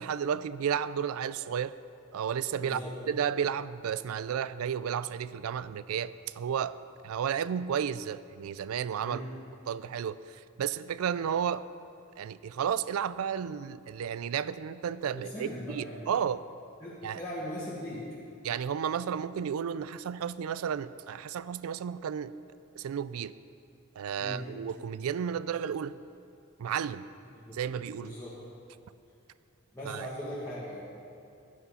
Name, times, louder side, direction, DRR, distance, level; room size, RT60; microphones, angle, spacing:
voice 1, 0.0-1.7 2.1-2.8 3.1-6.8 7.0-9.2 9.7-11.7 12.2-16.4 17.0-17.2 18.4-22.3 22.8-23.3 24.0-26.0 26.6-27.0 27.5-28.1 29.9-30.1, right 8 dB, 75° right, 16 dB, 0.4 m, -32 dB
voice 2, 2.6-2.9 9.0-9.3 15.1-16.1 16.8-18.0 24.2-24.5 27.3-27.6 28.0-28.4 29.7-30.8, equal, 15° left, -9 dB, 2.0 m, -39 dB
11.0 x 9.5 x 5.6 m, 2.6 s
head